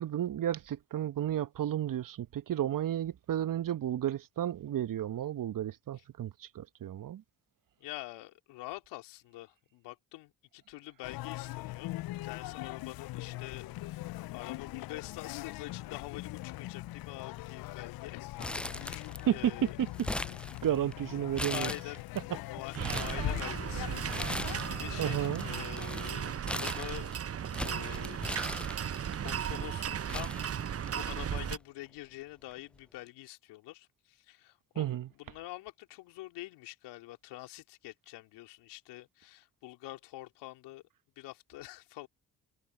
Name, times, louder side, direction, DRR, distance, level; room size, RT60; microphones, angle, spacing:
voice 1, 0.0-7.2 19.1-19.9 20.6-21.7 22.3-22.4 22.8-23.0 25.0-25.5 34.8-35.1, right 11 dB, 50° right, 1.3 m, -32 dB
voice 2, 7.8-11.9 12.2-19.0 19.3-19.7 20.5-20.6 21.4-22.0 22.3-24.0 24.7-27.1 27.6-28.4 28.8-28.9 29.2-30.4 30.9-40.8 41.2-42.1, left 18 dB, 75° left, 3.8 m, -46 dB
sound 1, 11.0-25.7, left 17 dB, 60° left, 0.7 m, -41 dB
Crumpling crinkling, 18.4-19.4 19.7-20.9 21.3-22.2 22.6-23.2 24.0-24.8 25.1-29.1 29.7-29.8 30.1-31.1 31.4-31.5 32.5-32.8, left 1 dB, 5° left, 0.4 m, -39 dB
sound 2, 22.8-31.6, right 8 dB, 35° right, 0.9 m, -36 dB
hypercardioid pair, 45°, 41 cm